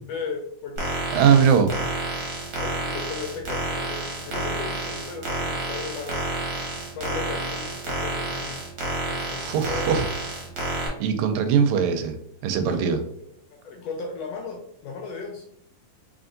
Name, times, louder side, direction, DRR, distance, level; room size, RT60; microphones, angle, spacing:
voice 1, 0.1-1.0 2.6-6.2 6.9-8.6 9.1-10.1 12.7-12.9 13.2-15.4, left 5 dB, 80° left, 2 dB, 1.5 m, -36 dB
sound 1, 0.8-10.9, right 2 dB, 60° right, 1.5 m, -30 dB
voice 2, 1.1-1.7 9.4-10.0 11.0-12.2 12.4-13.0, right 7 dB, 85° right, 7 dB, 1.9 m, -20 dB
4.0 x 3.4 x 2.5 m, 0.69 s
omnidirectional pair, 3.3 m